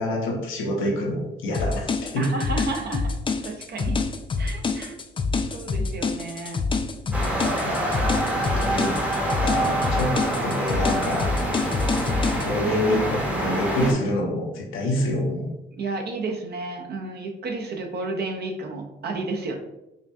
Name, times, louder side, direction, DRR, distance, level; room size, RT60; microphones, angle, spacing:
voice 1, 0.0-2.3 7.6-9.0 9.4-10.1 10.4-11.3 12.4-15.5, left 1 dB, 85° left, -1 dB, 0.9 m, -27 dB
sound 1, 1.5-12.5, left 4 dB, 25° left, 0.3 m, -26 dB
voice 2, 2.2-4.0 4.4-4.9 5.5-6.6 7.1-7.7 15.8-19.6, right 3 dB, 55° right, 3 dB, 0.7 m, -32 dB
sound 2, 7.1-13.9, right 1 dB, 5° right, 0.8 m, -26 dB
5.0 x 2.2 x 2.6 m, 0.91 s
cardioid pair, 90°, 20 cm